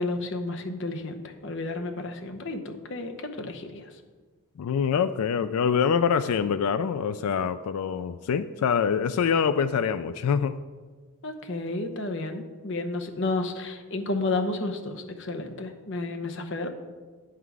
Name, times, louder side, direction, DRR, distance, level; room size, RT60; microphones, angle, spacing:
voice 1, 0.0-3.9 11.2-16.7, left 2 dB, 55° left, 6 dB, 0.8 m, -31 dB
voice 2, 4.6-10.6, left 7 dB, 85° left, 12 dB, 0.3 m, -25 dB
9.4 x 5.8 x 4.7 m, 1.4 s
head